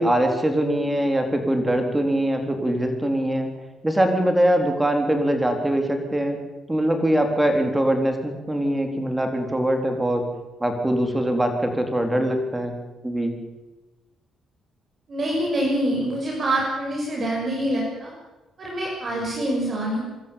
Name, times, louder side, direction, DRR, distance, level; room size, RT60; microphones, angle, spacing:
voice 1, 0.0-3.5 3.8-6.4 6.7-10.2 10.6-12.7 13.0-13.3, right 1 dB, 10° right, 5 dB, 4.2 m, -22 dB
voice 2, 15.1-18.1 18.6-20.0, right 1 dB, 45° right, -2 dB, 6.6 m, -25 dB
25.5 x 13.5 x 9.0 m, 1.1 s
cardioid pair, 90°, 0 cm